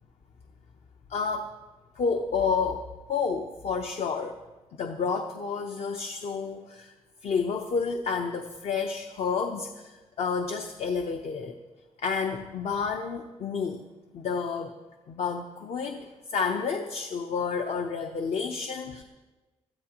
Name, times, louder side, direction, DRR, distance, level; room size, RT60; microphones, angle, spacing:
voice 1, 1.1-1.5 2.0-4.4 4.8-6.9 7.2-11.5 12.0-13.8 14.1-14.7 15.1-19.0, left 5 dB, 65° left, 4 dB, 0.8 m, -30 dB
21.0 x 13.0 x 3.0 m, 1.2 s
wide cardioid pair, 155°, 11 cm